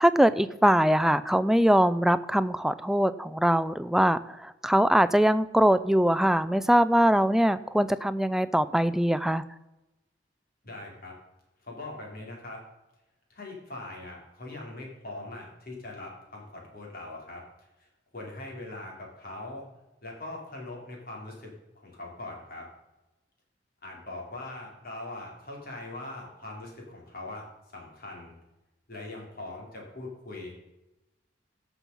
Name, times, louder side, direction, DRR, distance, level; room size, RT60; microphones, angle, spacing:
voice 1, 0.0-9.4, equal, ahead, 13 dB, 0.4 m, -22 dB
voice 2, 10.6-11.1 11.6-12.6 13.3-17.4 17.8-19.7 20.0-21.5 21.8-22.7 23.8-27.5 27.7-28.4 28.9-30.6, left 2 dB, 50° left, -1 dB, 3.8 m, -41 dB
16.0 x 6.1 x 5.4 m, 0.99 s
head